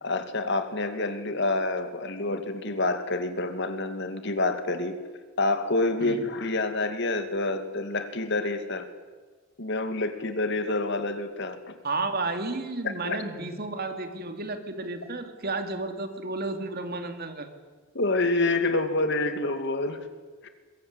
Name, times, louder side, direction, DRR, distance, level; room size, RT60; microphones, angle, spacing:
voice 1, 0.0-4.9 5.4-8.9 9.6-11.8 12.8-13.3 17.9-20.1 20.4-20.5, left 2 dB, 55° left, 8 dB, 2.5 m, -27 dB
voice 2, 11.8-17.5, right 3 dB, 50° right, 6 dB, 2.9 m, -32 dB
22.0 x 22.0 x 10.0 m, 1.4 s
head